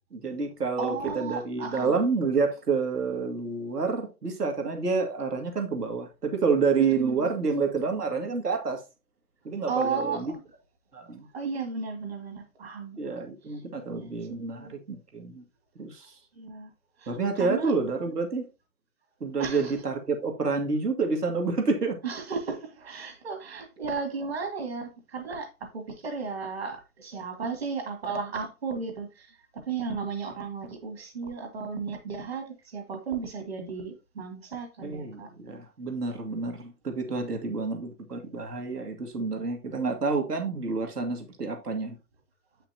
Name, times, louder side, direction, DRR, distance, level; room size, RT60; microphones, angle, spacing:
voice 1, 0.1-8.8 9.4-10.3 10.9-11.3 13.0-15.4 15.8-16.1 17.1-18.5 19.2-22.0 34.8-42.0, right 4 dB, 85° right, 2.3 m, -28 dB
voice 2, 0.8-2.0 6.8-7.3 9.7-10.4 11.3-13.0 13.9-14.7 16.4-16.7 17.0-17.7 19.4-19.8 22.0-35.3, right 5 dB, 40° right, 2.3 m, -34 dB
9.0 x 5.8 x 2.8 m
hypercardioid pair, 175°, 46 cm